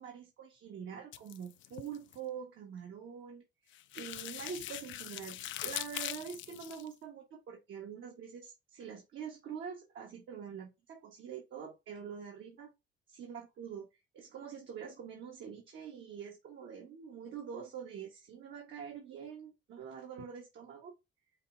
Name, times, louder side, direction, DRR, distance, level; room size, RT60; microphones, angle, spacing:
voice 1, 0.0-3.4 3.9-12.7 13.1-13.9 14.1-20.9, right 7 dB, 70° right, 1.4 m, -45 dB
sound 1, 1.1-2.2 3.7-6.9, left 13 dB, 75° left, 0.4 m, -42 dB
5.6 x 2.4 x 3.8 m
cardioid pair, 90°, 20 cm